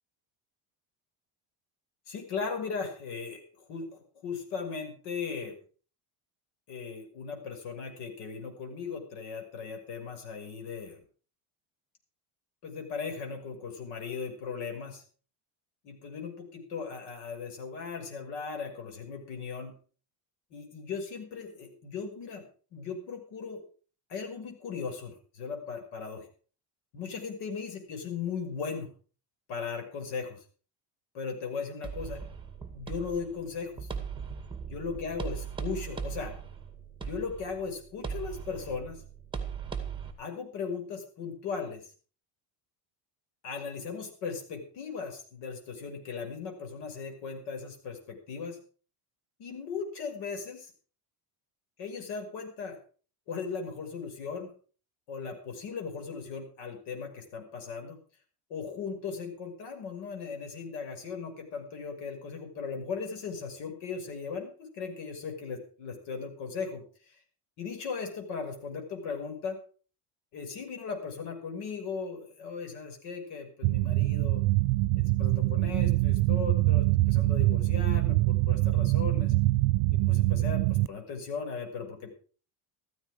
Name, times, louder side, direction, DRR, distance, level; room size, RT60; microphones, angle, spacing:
voice 1, 2.1-3.4 3.7-5.5 6.7-11.0 12.6-15.0 15.8-19.7 20.5-22.5 22.7-23.6 24.1-26.3 26.9-28.9 29.5-30.4 31.1-32.2 32.7-33.9 34.7-36.3 37.0-39.0 40.2-41.8 43.4-48.6 49.4-50.7 51.8-52.8 53.3-54.5 55.1-58.0 58.5-67.2 67.6-69.6 70.3-74.4 75.1-79.3 79.9-82.1, left 5 dB, 65° left, 4 dB, 6.1 m, -37 dB
sound 1, 31.8-40.1, right 6 dB, 10° right, 2.2 m, -39 dB
sound 2, 73.6-80.9, right 19 dB, 75° right, 0.7 m, -24 dB
15.0 x 14.5 x 5.0 m, 0.41 s
cardioid pair, 160°, 45 cm